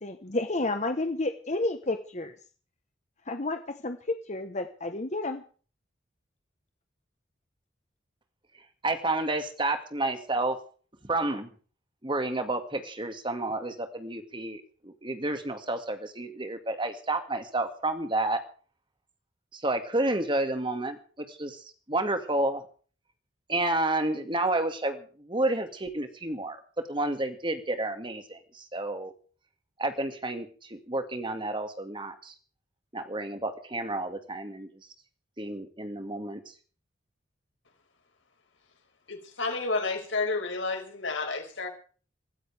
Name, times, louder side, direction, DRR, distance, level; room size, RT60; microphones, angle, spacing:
voice 1, 0.0-2.4 3.3-5.4, left 2 dB, 40° left, 7 dB, 1.2 m, -31 dB
voice 2, 8.8-10.6 11.0-11.5 12.0-18.4 19.5-21.0 21.3-22.6 23.5-26.6 26.9-29.1 29.8-32.3 32.9-34.7 35.4-36.4, right 2 dB, 25° right, 7 dB, 2.2 m, -30 dB
voice 3, 39.1-41.7, left 3 dB, 90° left, 3 dB, 5.4 m, -30 dB
23.5 x 15.5 x 3.5 m, 0.41 s
head